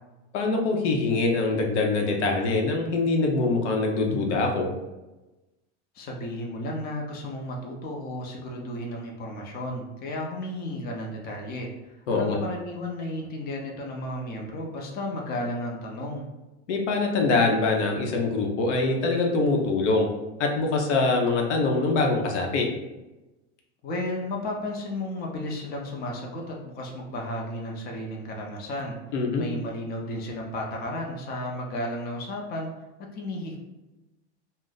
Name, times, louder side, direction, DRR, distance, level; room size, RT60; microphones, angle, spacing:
voice 1, 0.3-4.7 12.1-12.4 16.7-20.1 20.4-22.7 29.1-29.4, left 3 dB, 85° left, 1 dB, 0.7 m, -24 dB
voice 2, 5.9-11.7 12.1-16.3 23.8-29.0 29.4-32.7 33.1-33.6, left 1 dB, 25° left, 0 dB, 0.5 m, -33 dB
2.5 x 2.1 x 3.8 m, 1.0 s
supercardioid pair, 120°, 34 cm